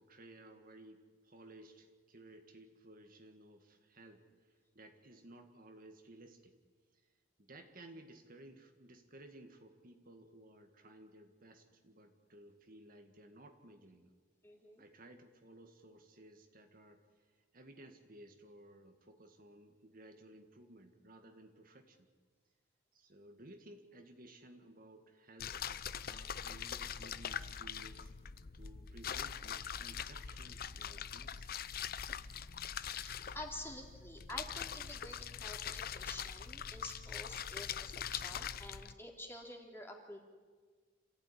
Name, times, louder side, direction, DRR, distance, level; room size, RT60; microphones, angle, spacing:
voice 1, 0.0-6.6 6.9-7.1 7.4-14.1 14.8-22.1 22.9-28.1 28.5-31.5, right 1 dB, 45° right, 5 dB, 1.8 m, -57 dB
voice 2, 14.4-14.8 32.7-40.2, left 1 dB, 10° left, 1 dB, 3.3 m, -49 dB
sound 1, 25.4-38.9, left 8 dB, 50° left, 0.6 m, -43 dB
28.0 x 15.5 x 9.9 m, 1.5 s
head